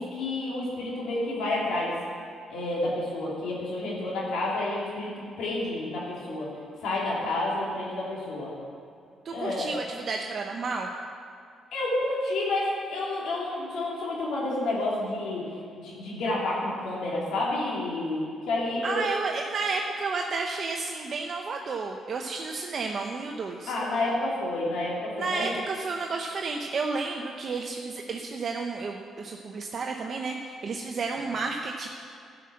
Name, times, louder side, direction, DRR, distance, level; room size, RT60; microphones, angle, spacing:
voice 1, 0.0-1.9 2.5-5.1 5.4-6.5 6.8-8.5 9.3-9.7 11.7-15.5 15.8-19.0 23.7-25.5, left 2 dB, 85° left, -6 dB, 2.7 m, -29 dB
voice 2, 9.2-10.9 18.8-23.7 25.2-31.9, right 4 dB, 50° right, 2 dB, 0.8 m, -31 dB
11.0 x 5.9 x 7.6 m, 2.5 s
cardioid pair, 90°, 0 cm